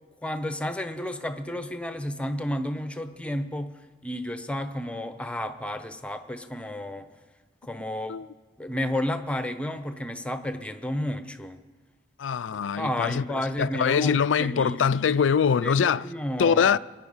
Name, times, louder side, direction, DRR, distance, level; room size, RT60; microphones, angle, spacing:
voice 1, 0.2-3.7 4.0-7.1 7.6-8.2 8.6-11.6 12.8-14.8 15.6-16.8, left 1 dB, 5° left, 0.8 m, -31 dB
voice 2, 12.2-13.2 13.6-16.1 16.4-16.8, left 6 dB, 85° left, 0.4 m, -23 dB
27.0 x 9.5 x 5.5 m
head